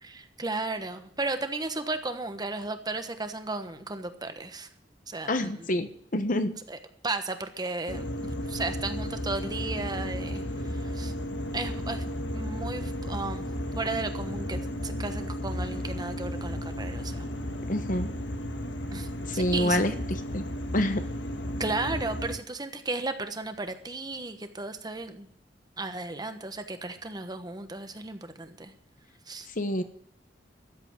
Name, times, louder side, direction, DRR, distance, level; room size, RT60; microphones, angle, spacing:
voice 1, 0.0-4.7 5.1-5.5 6.7-6.8 7.0-11.1 11.5-12.0 12.3-13.5 13.7-17.3 18.9-19.1 19.3-19.8 21.6-25.3 25.8-28.7 29.3-29.5, right 3 dB, 25° right, 8 dB, 1.2 m, -34 dB
voice 2, 5.3-6.5 17.7-18.1 19.3-19.9 20.3-20.4 20.7-21.0 29.6-29.8, left 1 dB, 50° left, 9 dB, 1.2 m, -27 dB
sound 1, 7.9-22.3, equal, 85° left, 1.5 m, -34 dB
13.5 x 8.0 x 9.5 m, 0.67 s
head